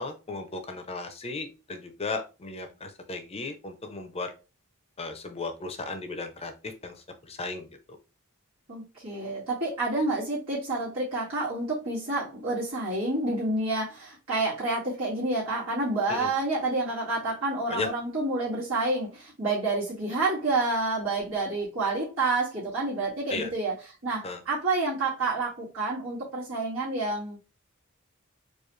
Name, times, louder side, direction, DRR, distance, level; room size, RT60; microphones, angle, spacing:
voice 1, 0.0-4.3 5.0-8.0 16.1-16.3 17.7-17.9 23.3-23.5 24.2-24.4, left 3 dB, 30° left, 6 dB, 0.7 m, -35 dB
voice 2, 8.7-23.7 24.0-27.4, right 2 dB, 70° right, -9 dB, 2.1 m, -29 dB
4.6 x 2.5 x 3.1 m, 0.30 s
head